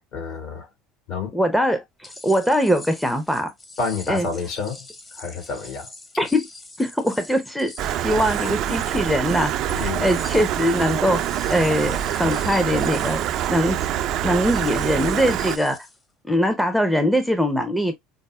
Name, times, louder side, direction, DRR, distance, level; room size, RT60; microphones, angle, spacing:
voice 1, 0.1-0.7 1.1-1.4 3.8-4.9 5.1-5.9 9.7-10.1, left 4 dB, 60° left, 2.0 m, -29 dB
voice 2, 1.3-3.5 4.1-4.3 6.2-6.5 6.8-13.2 13.5-13.9 14.2-15.9 16.2-17.9, equal, ahead, 0.6 m, -22 dB
sound 1, 2.0-16.0, left 2 dB, 20° left, 1.0 m, -43 dB
Stream, 7.8-15.6, right 11 dB, 60° right, 0.3 m, -25 dB
5.2 x 2.0 x 2.3 m
supercardioid pair, 95°, 0 cm